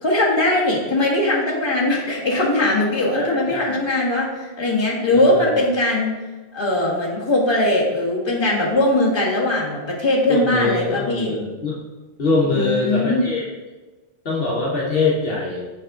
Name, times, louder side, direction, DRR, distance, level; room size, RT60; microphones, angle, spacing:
voice 1, 0.0-6.1 6.5-11.4 12.5-13.2, left 1 dB, 25° left, -5 dB, 1.4 m, -20 dB
voice 2, 3.1-3.8 5.3-5.5 10.3-11.8 12.2-13.5 14.2-15.6, left 3 dB, 60° left, -3 dB, 1.2 m, -23 dB
6.2 x 5.0 x 3.6 m, 1.2 s
omnidirectional pair, 1.1 m